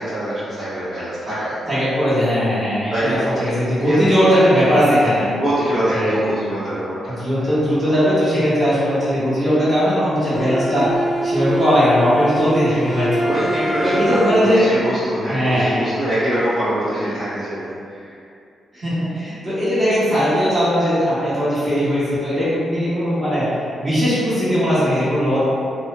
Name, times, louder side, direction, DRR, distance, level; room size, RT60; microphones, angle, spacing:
voice 1, 0.0-1.6 2.9-3.5 3.8-4.4 5.4-7.6 7.9-8.0 13.2-17.7 18.0-18.2, right 1 dB, 40° right, -15 dB, 0.8 m, -24 dB
voice 2, 1.7-5.3 5.9-6.3 7.1-10.9 11.2-13.3 13.8-14.6 15.3-15.9 18.7-23.5 23.8-25.4, equal, 20° right, -13 dB, 1.2 m, -18 dB
Bowed string instrument, 10.3-14.7, right 1 dB, 5° left, 0.4 m, -24 dB
2.9 x 2.1 x 2.4 m, 2.4 s
wide cardioid pair, 140°, 0 cm